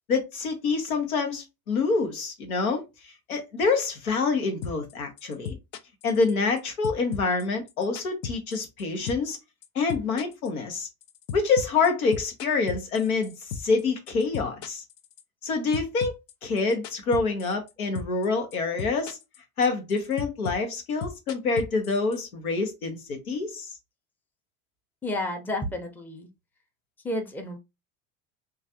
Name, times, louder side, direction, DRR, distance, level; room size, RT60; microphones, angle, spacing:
voice 1, 0.1-5.6 6.0-9.4 9.7-10.9 11.3-14.8 15.4-16.1 16.4-19.2 19.6-23.7, left 4 dB, 90° left, 0.9 m, -26 dB
sound 1, 4.6-4.9 5.2-6.6 6.8-8.8 9.1-9.4 9.6-13.8 14.1-15.5 15.7-17.7 18.0-18.3 18.5-19.4 19.6-22.2, left 7 dB, 65° left, 0.6 m, -35 dB
voice 2, 25.0-26.3 27.0-27.6, left 1 dB, 5° left, 0.6 m, -31 dB
3.1 x 2.4 x 2.6 m
hypercardioid pair, 80°, 42 cm